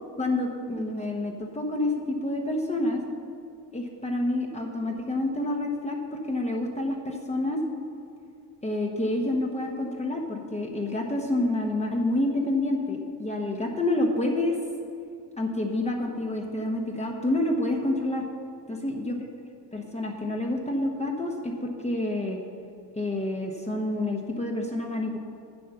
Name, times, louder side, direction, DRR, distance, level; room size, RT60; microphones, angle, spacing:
voice 1, 0.2-3.0 3.7-7.6 8.6-14.6 15.4-18.2 18.7-19.2 19.7-22.4 22.9-25.2, left 1 dB, 15° left, 1 dB, 1.0 m, -28 dB
8.5 x 7.9 x 6.7 m, 2.4 s
cardioid pair, 110°, 45 cm